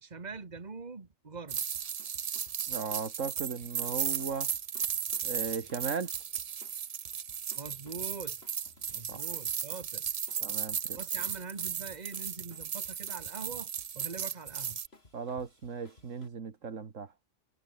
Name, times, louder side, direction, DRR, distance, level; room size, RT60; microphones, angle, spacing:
voice 1, 0.0-1.6 7.6-8.4 8.9-10.1 10.9-14.8, right 4 dB, 35° right, 1.8 m, -43 dB
sound 1, 1.5-16.3, left 2 dB, 50° left, 4.0 m, -61 dB
sound 2, 1.5-14.9, right 8 dB, 50° right, 0.4 m, -35 dB
voice 2, 2.7-4.5 5.2-6.1 9.1-9.2 10.4-11.0 15.1-17.1, right 5 dB, 80° right, 2.1 m, -37 dB
omnidirectional pair, 1.3 m